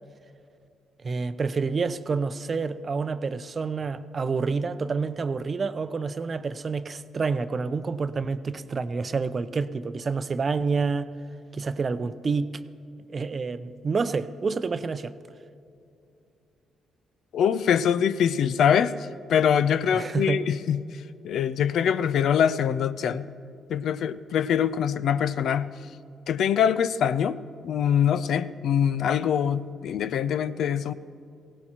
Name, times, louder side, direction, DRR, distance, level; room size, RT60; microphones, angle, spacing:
voice 1, 1.0-11.1 11.5-12.5 13.1-15.1 19.9-20.4, right 4 dB, 40° right, 12 dB, 0.5 m, -28 dB
voice 2, 17.3-18.9 19.3-20.8 21.2-23.3 23.7-25.7 26.3-27.4 27.6-30.9, left 8 dB, 70° left, 13 dB, 0.4 m, -23 dB
20.0 x 17.0 x 3.0 m, 2.6 s
cardioid pair, 90°, 0 cm